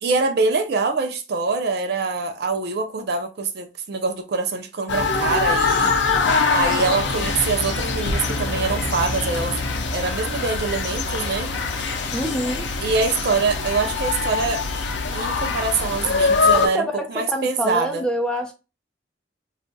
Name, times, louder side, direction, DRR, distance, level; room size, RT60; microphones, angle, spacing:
voice 1, 0.0-6.0 6.5-9.6 9.9-11.5 12.8-14.6 15.1-18.1, right 4 dB, 60° right, 0.5 m, -24 dB
sound 1, 4.9-16.7, left 4 dB, 80° left, 0.5 m, -23 dB
sound 2, 7.0-13.1, equal, 40° left, 1.1 m, -34 dB
voice 2, 12.1-12.7 16.5-18.5, equal, 5° left, 0.5 m, -26 dB
2.4 x 2.2 x 3.8 m
head